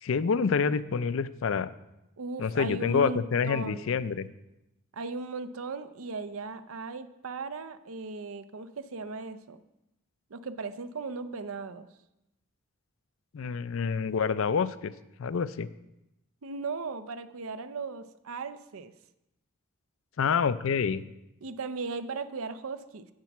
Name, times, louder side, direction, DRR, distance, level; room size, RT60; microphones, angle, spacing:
voice 1, 0.0-1.7 2.4-4.3 13.3-14.9 15.2-15.7 20.2-21.0, left 6 dB, 70° left, 15 dB, 0.4 m, -27 dB
voice 2, 2.2-4.0 4.9-9.6 10.3-11.9 16.4-18.9 21.4-23.1, right 4 dB, 80° right, 12 dB, 0.6 m, -37 dB
8.1 x 7.5 x 6.0 m, 0.90 s
head